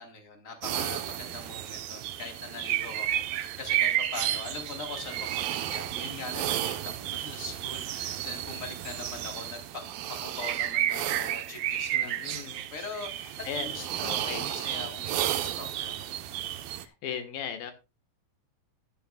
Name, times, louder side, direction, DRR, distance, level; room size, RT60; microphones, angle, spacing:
voice 1, 0.0-9.8 10.1-16.4, left 4 dB, 20° left, 4 dB, 4.0 m, -42 dB
sound 1, 0.6-16.8, right 12 dB, 75° right, 2.8 m, -32 dB
voice 2, 11.9-12.6 13.4-14.5 16.8-17.7, left 8 dB, 75° left, 8 dB, 3.3 m, -38 dB
14.0 x 13.0 x 2.4 m, 0.27 s
omnidirectional pair, 4.2 m